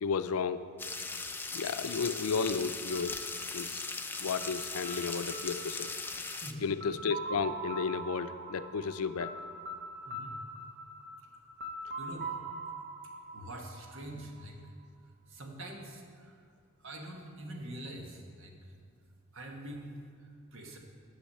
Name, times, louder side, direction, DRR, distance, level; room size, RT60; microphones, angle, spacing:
voice 1, 0.0-0.6 1.5-3.1 3.5-3.8 4.2-5.9 6.6-9.3, left 5 dB, 85° left, 12 dB, 0.5 m, -33 dB
sound 1, 0.8-6.5, left 3 dB, 10° left, 0.4 m, -39 dB
sound 2, 2.9-14.7, right 2 dB, 45° right, 0.9 m, -43 dB
voice 2, 10.1-10.4 12.0-12.3 13.3-14.6 15.3-16.3 16.8-18.6 19.3-20.8, right 1 dB, 65° right, 1 dB, 1.4 m, -44 dB
10.0 x 6.3 x 6.6 m, 2.3 s
head